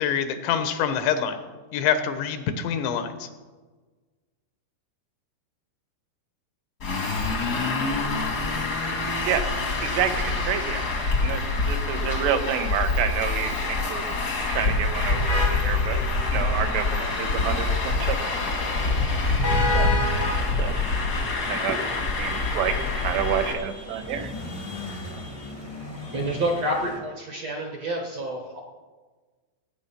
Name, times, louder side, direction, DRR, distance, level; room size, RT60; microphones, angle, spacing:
voice 1, 0.0-1.4 1.7-3.3, left 8 dB, 85° left, 9 dB, 3.3 m, -25 dB
Traffic noise roadway noise, 6.8-23.5, left 3 dB, 50° left, 1.1 m, -26 dB
voice 2, 9.8-14.0 14.5-16.0 16.3-18.2 19.7-19.9 20.6-20.7 21.5-21.8 22.2-24.3, right 9 dB, 75° right, 7 dB, 3.0 m, -28 dB
sound 1, 15.3-27.0, left 1 dB, 30° left, 0.4 m, -34 dB
voice 3, 26.1-28.6, right 1 dB, 55° right, 1 dB, 1.9 m, -28 dB
17.0 x 8.8 x 5.8 m, 1.3 s
omnidirectional pair, 5.1 m